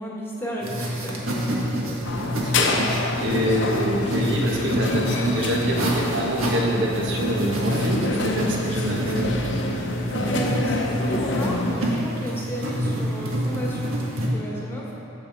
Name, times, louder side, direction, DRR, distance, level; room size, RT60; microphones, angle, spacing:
voice 1, 0.0-2.0 10.2-14.0 14.3-14.9, equal, 10° left, -4 dB, 1.4 m, -33 dB
sound 1, 0.6-14.3, equal, 80° right, 1.5 m, -27 dB
sound 2, 2.0-11.8, left 2 dB, 60° left, 0.8 m, -28 dB
voice 2, 3.2-9.3, equal, 60° right, -2 dB, 1.3 m, -26 dB
15.5 x 5.9 x 4.1 m, 2.9 s
head